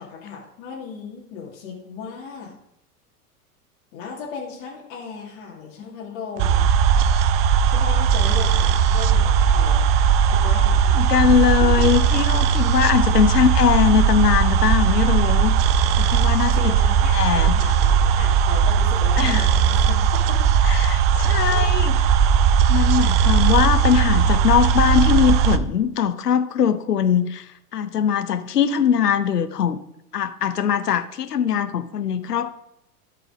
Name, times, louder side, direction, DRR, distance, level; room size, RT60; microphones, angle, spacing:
voice 1, 0.0-2.5 3.9-6.7 7.7-9.9 10.2-10.9 11.3-11.4 11.7-11.8 13.1-13.2 16.5-20.0 20.3-20.4 20.6-20.7 21.1-21.7, left 5 dB, 50° left, -4 dB, 2.4 m, -36 dB
sound 1, 6.4-25.6, right 7 dB, 40° right, 0.6 m, -18 dB
voice 2, 11.0-15.5 16.0-16.8 17.1-17.5 19.2-19.5 20.7-21.0 21.2-21.9 22.7-27.5 27.7-29.8 30.1-32.5, left 8 dB, 80° left, 11 dB, 0.9 m, -21 dB
12.5 x 4.9 x 4.9 m, 0.80 s
figure-of-eight pair, 95°, 47 cm